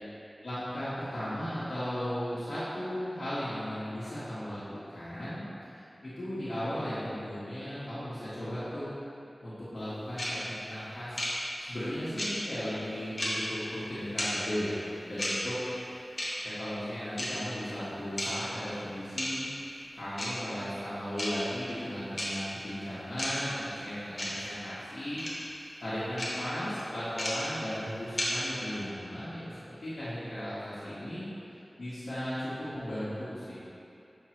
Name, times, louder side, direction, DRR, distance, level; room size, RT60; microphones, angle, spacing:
voice 1, 0.4-5.4 5.7-8.9 9.4-14.8 15.1-15.6 16.4-19.5 19.9-25.2 25.8-31.3 31.8-33.6, equal, 80° left, -13 dB, 1.6 m, -36 dB
sound 1, 10.2-10.3 11.2-11.3 12.2-12.3 13.2-13.3 14.2-14.3 15.2-15.3 16.2-16.3 17.2-17.3 18.2-18.3 19.2-19.3 20.2-20.3 21.2-21.3 22.2-22.3 23.2-23.3 24.2-24.3 25.2-25.3 26.2-26.3 27.2-27.3 28.2-28.3, left 1 dB, 40° left, 1.4 m, -32 dB
7.4 x 5.7 x 3.2 m, 2.8 s
wide cardioid pair, 70°, 0 cm